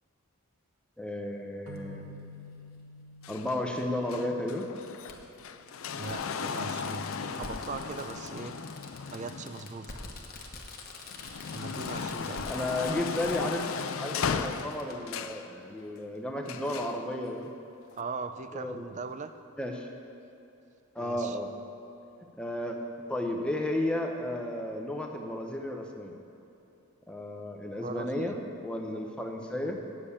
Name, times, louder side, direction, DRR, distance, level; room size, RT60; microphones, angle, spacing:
voice 1, 1.0-2.0 3.3-4.7 12.0-12.1 12.5-13.7 14.0-17.5 18.5-18.8 19.6-19.9 20.9-21.5 22.4-22.8 23.1-26.1 27.1-29.8, left 1 dB, 5° left, 2 dB, 0.7 m, -33 dB
sound 1, 1.7-5.2, equal, 85° right, 1.5 m, -49 dB
Fireworks, 1.8-1.9 3.4-3.5 5.1-5.2 5.7-5.8 6.0-14.9 15.2-15.3, left 3 dB, 40° left, 1.0 m, -45 dB
sound 2, 3.2-10.4 10.9-15.5 16.5-17.0 17.9-18.0, left 6 dB, 65° left, 0.4 m, -36 dB
voice 2, 5.9-8.6 9.1-10.0 11.5-12.5 18.0-19.3 21.0-21.4 27.8-28.4 29.6-29.8, right 4 dB, 35° right, 9 dB, 0.4 m, -40 dB
8.5 x 7.6 x 8.3 m, 2.7 s
head